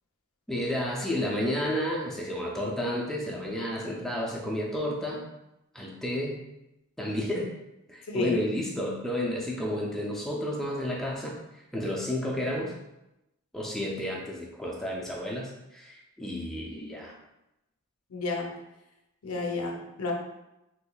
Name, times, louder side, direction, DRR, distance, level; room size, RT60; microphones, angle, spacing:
voice 1, 0.5-5.3 5.7-6.4 7.0-7.5 7.9-12.7 13.5-17.1, equal, ahead, -2 dB, 0.4 m, -31 dB
voice 2, 8.1-8.4 18.1-18.5 19.2-20.1, left 3 dB, 90° left, 1 dB, 0.6 m, -31 dB
3.8 x 2.9 x 2.3 m, 0.92 s
head